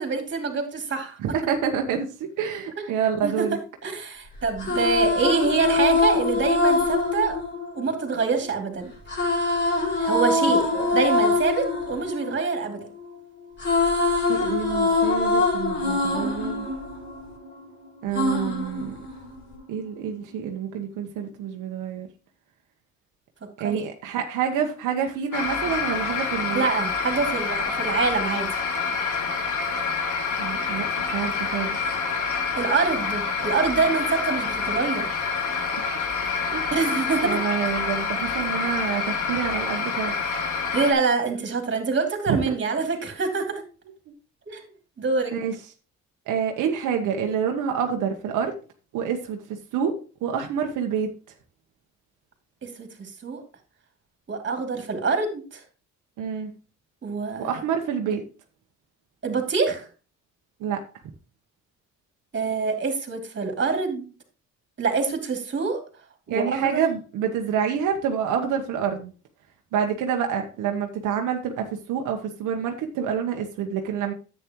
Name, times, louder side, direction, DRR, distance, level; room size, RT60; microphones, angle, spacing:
voice 1, 0.0-1.2 3.2-3.4 3.8-7.4 7.7-8.9 10.0-12.9 23.6-23.8 26.5-28.6 32.6-35.2 36.7-37.4 40.7-43.6 44.5-44.7 45.0-45.3 52.6-53.4 54.3-55.6 57.0-57.6 59.2-59.8 62.3-64.1 64.8-65.8 66.3-66.9, right 4 dB, 40° right, 4 dB, 2.8 m, -25 dB
voice 2, 1.2-3.6 10.7-10.9 14.2-16.7 18.0-19.0 19.7-22.1 23.6-26.7 30.4-31.8 36.5-36.7 37.2-40.1 42.3-42.6 44.1-44.2 45.3-45.5 46.3-48.6 48.9-51.1 56.2-56.5 57.4-58.3 60.6-60.8 66.3-69.1 69.7-74.1, right 7 dB, 90° right, 3 dB, 1.1 m, -27 dB
sound 1, 4.4-8.5 9.1-13.1 13.4-17.6 18.1-19.6, left 3 dB, 40° left, 4.3 m, -24 dB
sound 2, 25.3-40.9, left 5 dB, 80° left, 2.0 m, -27 dB
10.0 x 8.5 x 3.0 m, 0.35 s
cardioid pair, 90°, 30 cm